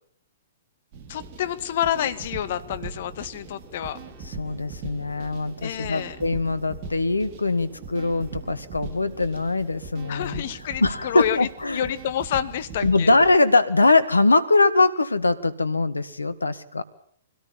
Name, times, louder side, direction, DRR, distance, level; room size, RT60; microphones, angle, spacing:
sound 1, 0.9-13.4, right 4 dB, 40° right, 3.7 m, -40 dB
voice 1, 1.1-4.0 5.6-6.2 10.1-11.4 11.7-13.1, left 11 dB, 50° left, 12 dB, 1.8 m, -28 dB
sound 2, 1.1-10.9, right 4 dB, 15° right, 5.6 m, -51 dB
voice 2, 4.2-10.4 10.8-11.9 12.8-16.8, left 3 dB, 80° left, 12 dB, 1.9 m, -22 dB
24.5 x 18.0 x 7.4 m, 0.63 s
figure-of-eight pair, 110°, 0 cm